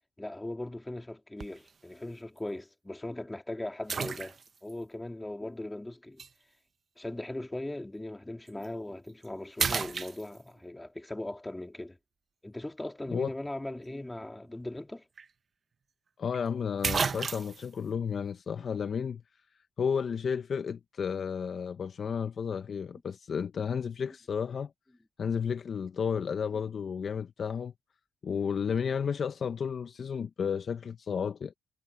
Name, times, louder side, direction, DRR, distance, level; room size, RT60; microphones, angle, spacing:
voice 1, 0.2-6.2 7.0-12.0 12.4-15.0 26.5-26.6, left 1 dB, 10° left, 3.2 m, -39 dB
sound 1, 1.4-1.7 2.4-2.5 3.9-4.7 6.2-6.3 8.5-8.7 9.1-9.3 9.6-10.7 14.8-14.9 15.2-15.3 16.3-16.4 16.8-17.7, right 5 dB, 40° right, 0.8 m, -32 dB
voice 2, 16.2-19.2 19.8-24.7 25.2-27.7 28.2-31.5, left 6 dB, 50° left, 0.9 m, -32 dB
cardioid pair, 90°, 0 cm